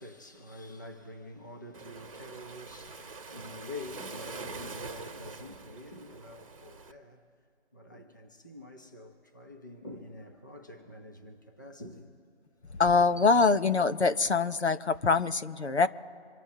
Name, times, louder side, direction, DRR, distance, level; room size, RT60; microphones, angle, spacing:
voice 1, 0.0-7.3 7.7-12.2 12.7-12.8, left 1 dB, 15° left, 0.9 m, -46 dB
Waves surf, 1.7-6.9, right 4 dB, 30° right, 1.2 m, -44 dB
voice 2, 12.8-15.9, left 4 dB, 75° left, 1.1 m, -24 dB
27.0 x 14.0 x 2.9 m
figure-of-eight pair, 165°, 33 cm